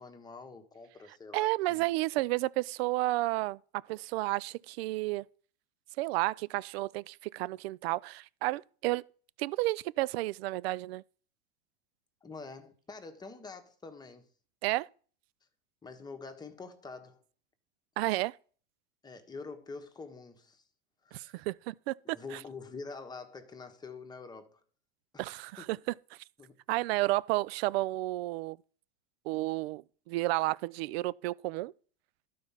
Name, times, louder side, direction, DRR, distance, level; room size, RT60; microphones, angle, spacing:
voice 1, 0.0-1.8 2.1-2.2 12.2-14.3 15.8-17.2 19.0-20.6 21.0-21.4 22.1-24.6 25.1-25.3 25.6-25.8 26.4-26.6, left 4 dB, 10° left, 1.3 m, -46 dB
voice 2, 1.3-3.6 3.9-5.2 6.0-9.0 9.4-11.0 14.6-14.9 18.0-18.3 21.1-22.4 25.2-25.8 26.7-28.6 29.3-31.7, right 19 dB, 65° right, 0.5 m, -31 dB
12.0 x 4.6 x 5.7 m
supercardioid pair, 130°, 34 cm